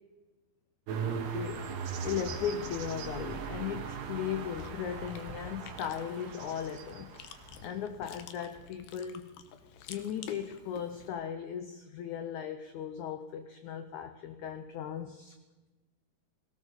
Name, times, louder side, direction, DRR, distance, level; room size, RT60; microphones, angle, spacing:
sound 1, 0.9-7.8, right 6 dB, 85° right, 3.6 m, -39 dB
voice 1, 1.0-1.6 2.0-7.1 7.6-9.4 9.9-15.4, left 8 dB, 85° left, 8 dB, 1.6 m, -37 dB
Chewing mastication, 4.2-11.1, left 8 dB, 70° left, 2.5 m, -50 dB
19.0 x 17.5 x 4.0 m, 1.2 s
omnidirectional pair, 4.6 m